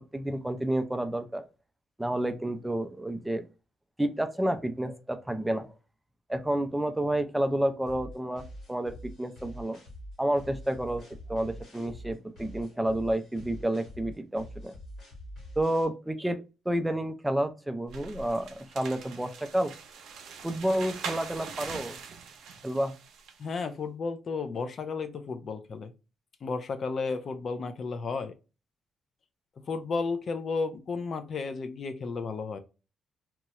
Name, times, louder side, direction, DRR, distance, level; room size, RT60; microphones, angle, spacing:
voice 1, 0.1-1.4 2.0-3.4 4.0-5.7 6.3-9.8 10.2-14.7 15.6-19.7 20.4-22.0 22.6-22.9, right 1 dB, 10° right, 0.4 m, -30 dB
sound 1, 7.9-15.9, equal, 75° left, 1.4 m, -45 dB
sound 2, 17.9-23.4, right 6 dB, 80° right, 0.6 m, -42 dB
voice 2, 23.4-25.9 26.4-28.3 29.7-32.6, left 4 dB, 50° left, 0.5 m, -33 dB
2.9 x 2.3 x 3.0 m
cardioid pair, 90°, 0 cm